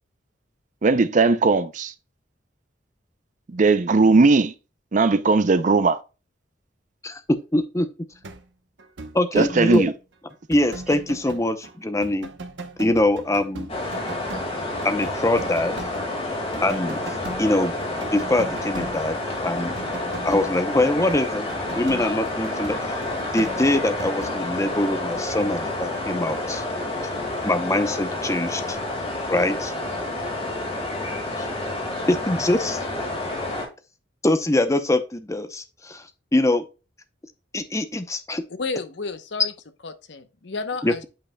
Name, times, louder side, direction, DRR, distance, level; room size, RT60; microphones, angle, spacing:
voice 1, 0.8-1.9 3.5-4.5 4.9-6.0 9.3-9.9, right 3 dB, 40° right, 0.5 m, -18 dB
voice 2, 7.5-7.9 9.1-9.9 10.5-12.3 12.8-13.7 14.8-15.7 16.6-17.0 17.4-17.8 18.1-19.7 20.2-21.5 21.7-22.9 23.3-26.6 27.4-28.8 29.3-29.7 31.4-31.5 32.1-32.8 34.2-36.0 36.3-36.6 37.5-38.4 40.8-41.1, left 1 dB, 15° left, 0.7 m, -23 dB
sound 1, 8.1-8.4 8.8-11.8 12.0-24.4, right 2 dB, 70° right, 0.9 m, -39 dB
sound 2, 13.7-33.7, left 2 dB, 30° left, 1.9 m, -29 dB
voice 3, 38.5-39.5 39.8-41.0, left 4 dB, 65° left, 0.8 m, -31 dB
8.7 x 5.4 x 2.2 m
head